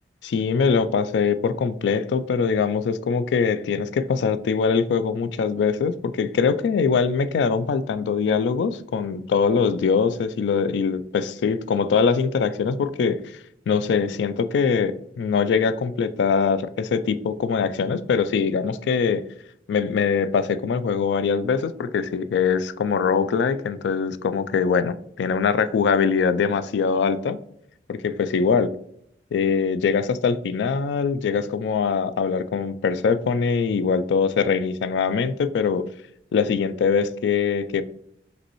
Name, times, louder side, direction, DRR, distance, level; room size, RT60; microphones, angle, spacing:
voice 1, 0.2-13.2 13.7-19.2 19.7-27.4 27.9-28.7 29.3-35.8 36.3-37.8, left 5 dB, 80° left, 13 dB, 0.3 m, -22 dB
5.2 x 3.1 x 3.0 m, 0.72 s
head